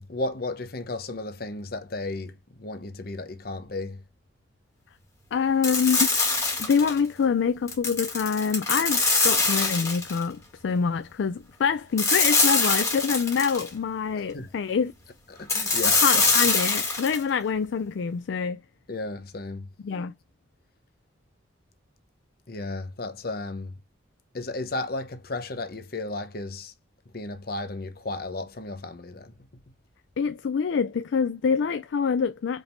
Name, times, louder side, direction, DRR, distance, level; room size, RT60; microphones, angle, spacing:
voice 1, 0.0-4.0 14.3-14.5 15.4-16.2 18.9-19.7 22.5-23.7 24.3-26.7 27.1-29.3, left 2 dB, 50° left, 0.8 m, -34 dB
voice 2, 5.3-6.1 6.6-14.9 15.9-18.6 19.8-20.1 30.2-32.6, left 6 dB, 70° left, 0.4 m, -26 dB
sound 1, 5.6-7.0 7.7-10.2 12.0-13.7 15.5-17.2, left 3 dB, 15° left, 1.6 m, -23 dB
5.0 x 3.5 x 2.6 m
head